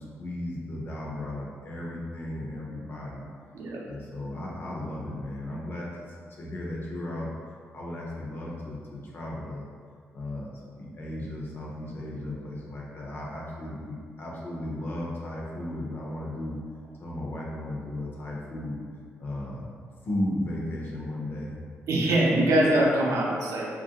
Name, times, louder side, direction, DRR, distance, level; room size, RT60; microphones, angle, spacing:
voice 1, 0.0-3.2 3.9-7.3 7.7-9.6 10.1-10.5 10.8-16.6 17.0-18.8 19.2-19.7 20.0-21.5, left 1 dB, 45° left, -3 dB, 0.6 m, -35 dB
voice 2, 21.9-23.8, right 1 dB, 85° right, -3 dB, 0.5 m, -23 dB
3.1 x 2.4 x 2.8 m, 2.1 s
wide cardioid pair, 135°, 5 cm